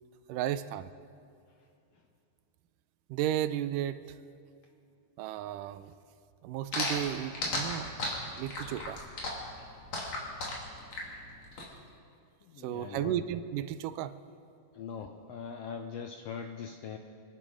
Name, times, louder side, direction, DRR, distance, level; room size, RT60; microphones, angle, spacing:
voice 1, 0.3-0.9 3.1-4.0 5.2-5.9 6.4-9.0 12.6-14.1, right 11 dB, 90° right, 13 dB, 2.2 m, -34 dB
sound 1, 6.7-11.6, left 2 dB, 55° left, 3.6 m, -34 dB
voice 2, 12.5-13.1 14.7-17.0, left 6 dB, 80° left, 5 dB, 1.4 m, -41 dB
25.5 x 11.0 x 5.0 m, 2.4 s
omnidirectional pair, 3.6 m